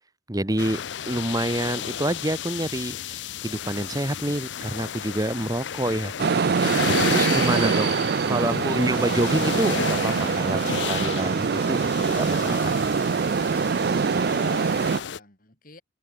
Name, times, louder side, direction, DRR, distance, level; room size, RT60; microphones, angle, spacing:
voice 1, 0.3-0.8 1.1-6.1 7.1-7.9 8.3-11.8 12.1-12.8, right 1 dB, 20° right, 1.3 m, -27 dB
sound 1, 0.6-15.2, left 8 dB, 70° left, 0.5 m, -33 dB
sound 2, 6.2-15.0, right 5 dB, 55° right, 0.4 m, -24 dB
voice 2, 14.0-15.8, left 2 dB, 50° left, 6.5 m, -52 dB
head